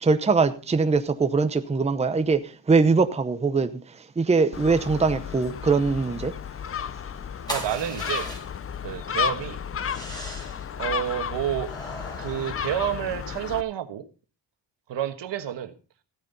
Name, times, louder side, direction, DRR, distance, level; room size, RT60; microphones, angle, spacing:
voice 1, 0.0-3.7 4.2-6.3, right 4 dB, 15° right, 0.7 m, -22 dB
Gull seagull, 4.5-13.6, left 8 dB, 30° left, 0.5 m, -33 dB
sound 1, 7.5-8.7 9.8-10.7 11.6-13.3, right 1 dB, 10° left, 3.4 m, -38 dB
voice 2, 7.5-8.3 8.8-9.6 10.8-11.7 12.2-14.0 14.9-15.7, right 10 dB, 75° right, 1.5 m, -29 dB
15.0 x 9.3 x 4.0 m
cardioid pair, 115°, 43 cm